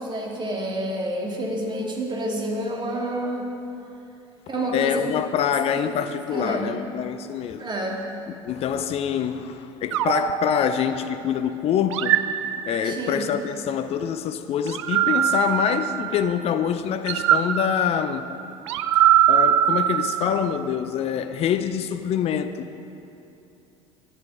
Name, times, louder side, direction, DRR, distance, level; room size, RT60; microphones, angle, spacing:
voice 1, 0.0-3.5 4.5-5.1 5.8-5.9 6.3-6.7 7.6-8.0 12.8-13.3, right 1 dB, 30° right, 2.1 m, -28 dB
voice 2, 4.7-7.6 8.4-12.2 12.6-18.3 19.3-22.7, left 8 dB, 40° left, 0.6 m, -25 dB
sound 1, 9.9-11.3 11.9-13.2 14.7-16.4 17.1-20.6, right 11 dB, 75° right, 0.4 m, -22 dB
10.5 x 10.0 x 4.9 m
figure-of-eight pair, 65°, 15 cm